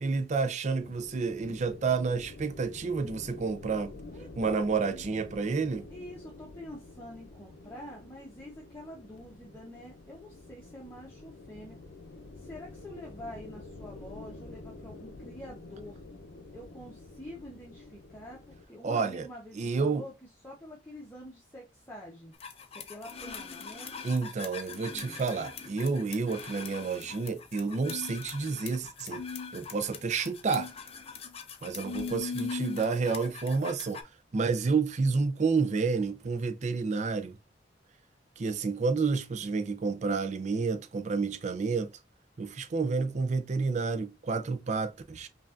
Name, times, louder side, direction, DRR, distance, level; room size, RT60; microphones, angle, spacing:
voice 1, 0.0-3.9 4.4-5.9 18.8-19.3 19.6-20.0 24.0-29.2 29.5-30.7 31.6-34.0 34.3-37.4 38.4-42.0 42.4-45.3, right 4 dB, 40° right, 0.4 m, -30 dB
sound 1, 0.8-18.6, left 2 dB, 90° left, 0.6 m, -48 dB
voice 2, 4.1-4.9 5.9-11.8 12.4-16.0 16.5-20.1 20.4-22.3 22.7-23.9 24.9-25.2, left 1 dB, 15° left, 0.9 m, -46 dB
sound 2, 22.4-34.0, left 5 dB, 35° left, 0.5 m, -40 dB
5.4 x 2.4 x 2.4 m
head